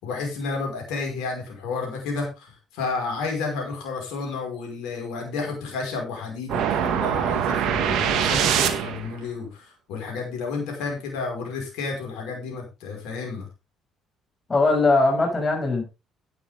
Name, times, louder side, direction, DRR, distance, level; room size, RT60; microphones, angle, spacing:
voice 1, 0.0-13.5, left 4 dB, 75° left, 1 dB, 5.5 m, -31 dB
sound 1, 6.5-9.2, right 9 dB, 70° right, 2.0 m, -23 dB
voice 2, 14.5-15.8, left 3 dB, 30° left, 1 dB, 6.8 m, -20 dB
12.5 x 9.9 x 3.7 m, 0.27 s
hypercardioid pair, 60°, 0 cm